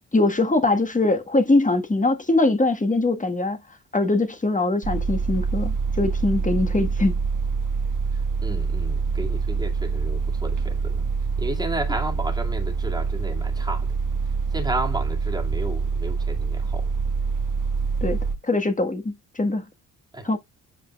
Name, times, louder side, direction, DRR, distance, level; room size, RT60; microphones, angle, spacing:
voice 1, 0.1-3.6 3.9-7.1 18.0-18.2 18.4-19.6 20.2-20.4, left 2 dB, 15° left, 1.6 m, -22 dB
sound 1, 4.8-18.4, right 5 dB, 40° right, 1.3 m, -25 dB
voice 2, 8.4-11.1 11.4-14.0 14.5-16.9 20.1-20.3, right 1 dB, 10° right, 2.3 m, -32 dB
8.3 x 4.9 x 2.4 m
hypercardioid pair, 45°, 46 cm